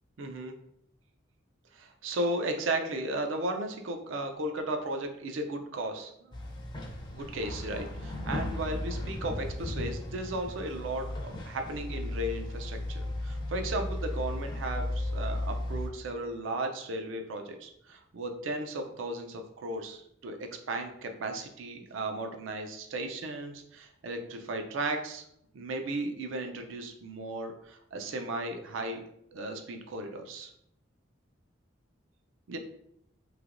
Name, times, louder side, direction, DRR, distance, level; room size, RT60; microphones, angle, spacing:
voice 1, 0.2-0.5 1.7-6.3 7.1-25.2 25.5-29.0 29.3-30.5 32.5-32.6, right 2 dB, 80° right, 5 dB, 0.4 m, -35 dB
sound 1, 6.3-15.9, left 1 dB, 25° left, 0.4 m, -35 dB
3.2 x 2.9 x 2.5 m, 0.76 s
head